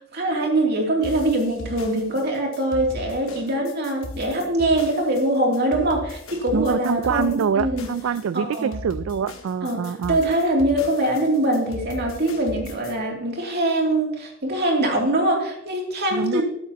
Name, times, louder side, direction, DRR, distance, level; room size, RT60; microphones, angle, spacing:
voice 1, 0.0-7.9 8.3-8.7 9.6-16.4, right 1 dB, 55° right, 0 dB, 2.7 m, -23 dB
sound 1, 1.0-12.9, left 2 dB, 90° left, 1.7 m, -37 dB
voice 2, 6.5-10.2 16.1-16.4, right 7 dB, 75° right, 15 dB, 0.3 m, -25 dB
13.0 x 11.0 x 2.9 m, 0.78 s
head